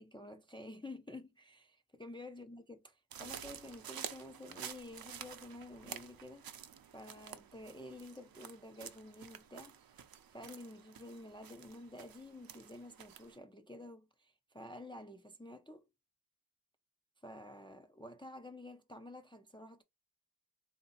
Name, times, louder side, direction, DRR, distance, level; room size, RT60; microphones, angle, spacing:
voice 1, 0.0-6.5 6.9-10.0 10.3-15.9 17.2-19.8, left 1 dB, 10° left, 0.3 m, -50 dB
sound 1, 3.1-13.4, right 8 dB, 50° right, 0.5 m, -50 dB
3.7 x 2.6 x 4.0 m
wide cardioid pair, 150°, 47 cm